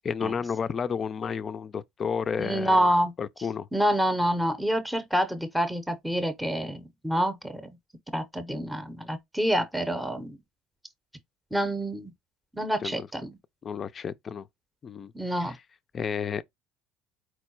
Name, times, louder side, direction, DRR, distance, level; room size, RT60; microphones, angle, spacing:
voice 1, 0.0-2.9 3.2-3.7 12.8-13.1 13.6-14.5 14.8-15.1 15.4-15.6 15.9-16.4, left 6 dB, 35° left, 0.4 m, -31 dB
voice 2, 2.4-3.1 3.7-7.6 8.1-10.4 11.5-12.1 12.5-13.3 15.1-15.6, equal, 5° right, 0.7 m, -27 dB
4.5 x 2.1 x 4.5 m
supercardioid pair, 105°, 0 cm